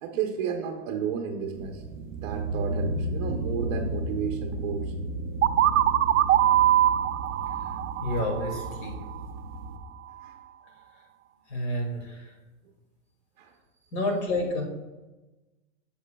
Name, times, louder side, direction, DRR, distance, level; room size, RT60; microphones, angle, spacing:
voice 1, 0.0-1.8 2.2-4.9 10.2-10.4 13.4-13.5, right 7 dB, 40° right, 2 dB, 0.7 m, -32 dB
sound 1, 1.5-9.8, right 1 dB, 20° right, 0.3 m, -34 dB
sound 2, 5.4-9.2, right 12 dB, 90° right, 0.5 m, -23 dB
voice 2, 8.0-9.0 11.5-12.3 13.9-14.6, left 1 dB, 55° left, 1 dB, 2.3 m, -29 dB
9.7 x 6.8 x 2.2 m, 1.1 s
supercardioid pair, 150°, 38 cm